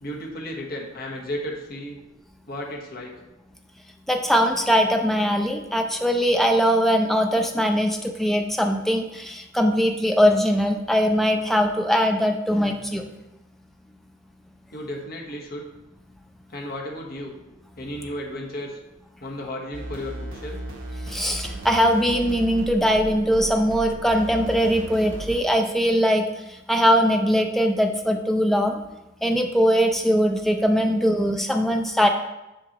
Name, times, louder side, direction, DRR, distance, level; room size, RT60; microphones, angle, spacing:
voice 1, 0.0-2.0 2.5-3.2 14.7-15.7 16.5-17.3 17.8-18.8 19.2-20.6, left 1 dB, 50° left, 0 dB, 1.1 m, -34 dB
voice 2, 4.1-13.0 21.1-26.2 26.7-28.8 29.2-32.1, equal, ahead, 3 dB, 0.5 m, -21 dB
sound 1, 19.7-25.4, right 1 dB, 80° right, 0.9 m, -36 dB
7.7 x 5.4 x 3.0 m, 0.98 s
head